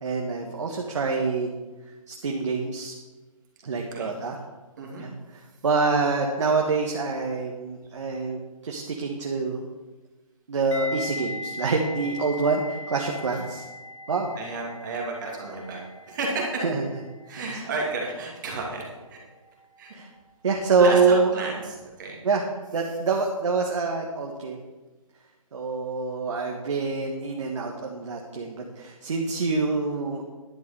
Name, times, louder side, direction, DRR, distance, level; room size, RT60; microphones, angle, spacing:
voice 1, 0.0-1.5 2.1-2.9 3.6-4.4 5.0-5.1 5.6-9.6 10.5-13.6 14.1-14.3 16.6-16.8 19.9-20.1 20.4-21.3 22.2-22.4 22.7-24.6 25.5-30.2, right 4 dB, 55° right, 0 dB, 1.4 m, -26 dB
sound 1, 10.7-19.7 19.9-20.2, left 2 dB, 60° left, 1.8 m, -40 dB
voice 2, 14.4-15.8 16.1-16.7 17.2-18.8 19.1-19.2 19.8-20.0 20.8-22.2 22.6-23.3, right 3 dB, 30° right, -2 dB, 2.5 m, -32 dB
11.0 x 6.7 x 6.8 m, 1.2 s
hypercardioid pair, 165°, 18 cm